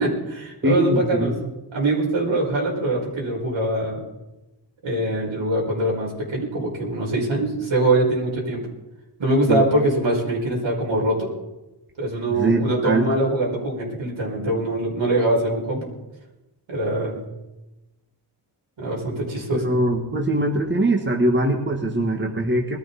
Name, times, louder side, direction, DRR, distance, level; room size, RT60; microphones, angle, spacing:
voice 1, 0.0-4.0 4.8-8.7 9.2-11.3 12.0-15.9 16.7-17.2 18.8-19.6, right 1 dB, 80° right, -3 dB, 5.4 m, -23 dB
voice 2, 0.6-1.3 9.5-9.7 12.3-13.1 19.5-22.8, right 1 dB, 25° right, 1 dB, 1.7 m, -22 dB
21.0 x 13.5 x 4.2 m, 1.0 s
wide cardioid pair, 105°, 45 cm